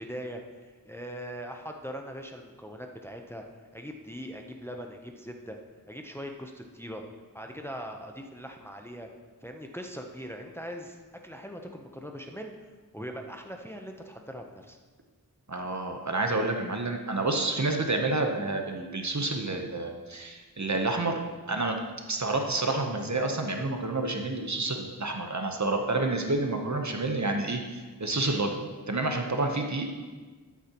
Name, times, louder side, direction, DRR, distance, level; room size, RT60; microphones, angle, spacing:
voice 1, 0.0-3.4 3.7-5.6 5.9-7.0 7.3-9.1 9.4-11.0 11.2-12.7 12.9-14.8, equal, 5° left, 3 dB, 0.8 m, -41 dB
voice 2, 15.5-21.2 21.5-21.8 22.1-28.6 28.9-29.9, right 2 dB, 50° right, 3 dB, 1.0 m, -29 dB
12.5 x 8.4 x 3.0 m, 1.4 s
wide cardioid pair, 40°, 36 cm